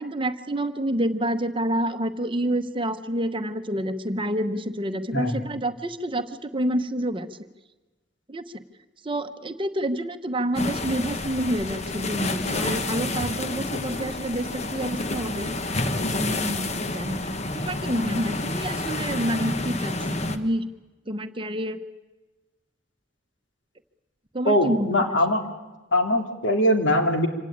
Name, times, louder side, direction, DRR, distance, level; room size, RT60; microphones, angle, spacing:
voice 1, 0.0-7.4 8.3-8.6 9.0-15.5 16.1-20.7 21.1-21.8 24.3-25.2, right 1 dB, 30° right, 9 dB, 1.0 m, -28 dB
voice 2, 5.1-5.5 24.4-25.4 25.9-27.3, left 1 dB, 85° left, 4 dB, 2.8 m, -22 dB
sound 1, 10.5-20.4, left 2 dB, 35° left, 1.2 m, -29 dB
26.0 x 17.5 x 8.8 m, 1.2 s
head